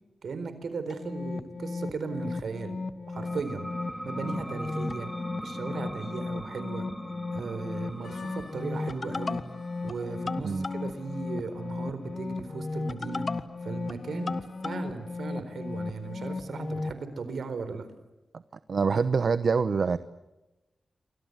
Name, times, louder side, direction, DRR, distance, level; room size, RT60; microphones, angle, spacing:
voice 1, 0.2-2.8 3.1-3.7 4.0-5.1 5.4-6.9 7.3-9.4 9.8-14.3 14.6-17.9, right 4 dB, 80° right, 11 dB, 4.2 m, -37 dB
sound 1, 0.9-17.0, left 3 dB, 50° left, 1.6 m, -35 dB
sound 2, 3.1-14.4, equal, 5° right, 3.3 m, -43 dB
Harmonica, 7.7-17.3, left 4 dB, 80° left, 4.8 m, -57 dB
voice 2, 18.7-20.0, right 5 dB, 65° right, 13 dB, 1.0 m, -25 dB
29.0 x 25.0 x 8.1 m, 1.0 s
cardioid pair, 80°, 0 cm